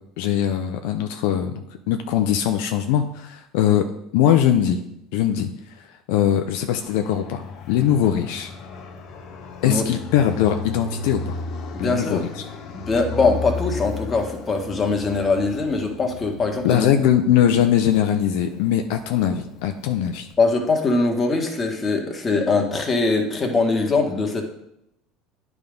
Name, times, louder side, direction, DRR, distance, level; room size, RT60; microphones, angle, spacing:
voice 1, 0.2-1.5 1.9-3.8 4.1-4.8 5.1-5.5 6.1-7.4 7.7-8.5 9.6-11.4 11.8-12.4 16.6-20.3, left 10 dB, 75° left, 6 dB, 0.6 m, -21 dB
Fixed-wing aircraft airplane, 6.8-20.3, left 4 dB, 60° left, 1.0 m, -35 dB
voice 2, 11.7-12.2 12.7-16.9 20.4-24.4, left 3 dB, 25° left, 2 dB, 1.5 m, -22 dB
9.3 x 3.6 x 5.2 m, 0.82 s
supercardioid pair, 100°, 0 cm